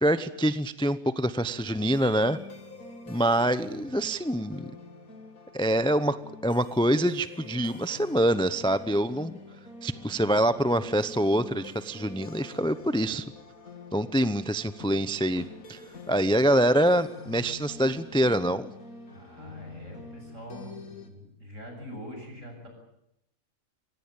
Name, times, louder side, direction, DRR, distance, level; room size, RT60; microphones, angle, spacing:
voice 1, 0.0-2.4 3.1-4.7 5.5-6.2 6.4-9.3 9.8-13.3 13.9-15.8 16.1-18.7, right 1 dB, 5° left, 13 dB, 0.6 m, -25 dB
sound 1, 1.4-21.1, left 3 dB, 85° left, 3.0 m, -46 dB
voice 2, 19.1-22.7, equal, 65° right, 3 dB, 7.6 m, -44 dB
24.5 x 18.0 x 8.9 m, 0.81 s
omnidirectional pair, 1.4 m